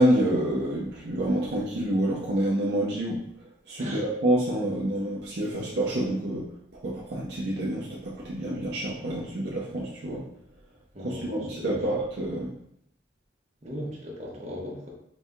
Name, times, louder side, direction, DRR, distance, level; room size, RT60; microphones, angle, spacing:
voice 1, 0.0-3.2 3.7-6.5 6.8-10.2 11.0-12.5, right 1 dB, 60° right, -5 dB, 0.7 m, -27 dB
voice 2, 10.9-11.8 13.6-14.9, equal, 40° right, -3 dB, 1.1 m, -37 dB
4.0 x 2.7 x 3.5 m, 0.72 s
head